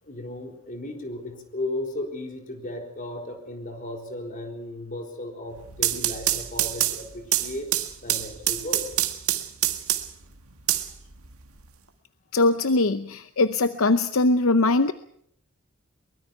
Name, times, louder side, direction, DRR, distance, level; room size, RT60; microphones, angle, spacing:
voice 1, 0.0-7.7 8.0-8.9, left 1 dB, 40° left, 3 dB, 4.0 m, -35 dB
sound 1, 5.6-10.2 10.7-11.6, right 13 dB, 80° right, 1.7 m, -26 dB
voice 2, 12.3-14.9, left 2 dB, 65° left, 11 dB, 0.8 m, -21 dB
23.0 x 21.0 x 5.8 m, 0.66 s
head